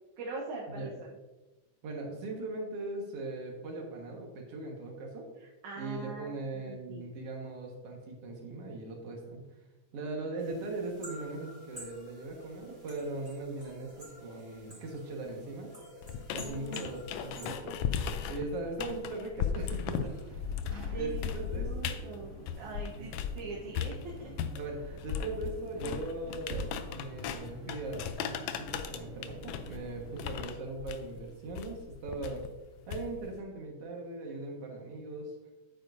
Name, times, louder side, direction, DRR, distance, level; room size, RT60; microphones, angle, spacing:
voice 1, 0.2-1.1 5.4-7.1 16.4-16.8 20.9-24.3, right 3 dB, 70° right, -4 dB, 2.5 m, -42 dB
voice 2, 1.8-5.3 5.8-9.4 9.9-15.7 16.3-17.7 18.3-20.4 20.9-22.0 23.0-23.1 24.6-32.4 32.9-35.3, right 2 dB, 55° right, 1 dB, 2.2 m, -39 dB
sound 1, 10.4-17.5, equal, 10° right, 2.9 m, -51 dB
sound 2, 16.0-23.4 23.7-33.4, left 8 dB, 90° left, 1.5 m, -37 dB
sound 3, 20.0-30.3, right 1 dB, 40° right, 1.2 m, -47 dB
9.1 x 8.9 x 2.6 m, 1.1 s
omnidirectional pair, 3.6 m